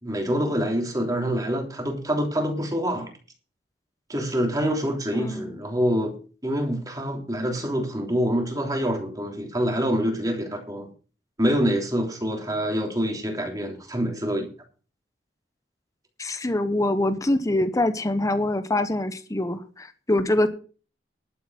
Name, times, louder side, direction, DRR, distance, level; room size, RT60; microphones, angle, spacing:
voice 1, 0.0-3.1 4.1-6.1 6.4-10.9 11.4-14.5, equal, 20° right, 3.3 m, -26 dB
voice 2, 5.1-5.6 16.2-20.5, left 1 dB, 20° left, 1.0 m, -24 dB
12.0 x 7.9 x 6.3 m
head